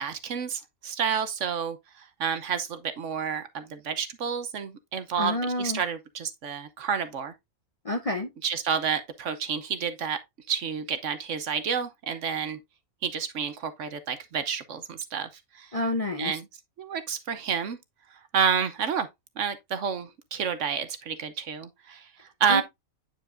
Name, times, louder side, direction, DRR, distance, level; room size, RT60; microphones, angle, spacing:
voice 1, 0.0-7.3 8.4-10.2 10.5-12.6 13.0-15.3 15.5-15.7 16.2-16.4 16.8-17.8 18.3-19.1 19.4-22.6, right 7 dB, 60° right, 1.1 m, -29 dB
voice 2, 5.2-5.8 7.8-8.3 15.7-16.3 22.5-22.6, left 2 dB, 35° left, 0.6 m, -28 dB
9.1 x 5.0 x 2.5 m
omnidirectional pair, 1.5 m